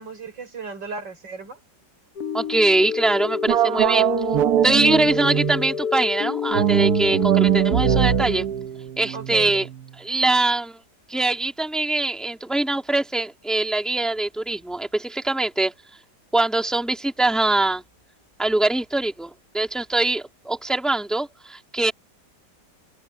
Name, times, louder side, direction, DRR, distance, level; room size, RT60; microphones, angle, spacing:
voice 1, 0.0-1.6 9.1-9.7, right 4 dB, 80° right, 5.4 m, -35 dB
sound 1, 2.2-8.3, left 6 dB, 60° left, 1.4 m, -28 dB
voice 2, 2.3-4.1 4.6-8.5 9.0-9.7 10.0-10.8 11.1-15.7 16.3-17.8 18.4-21.9, right 2 dB, ahead, 2.7 m, -23 dB
sound 2, 3.5-5.7 6.5-9.8, right 12 dB, 65° right, 1.2 m, -22 dB
omnidirectional pair, 2.0 m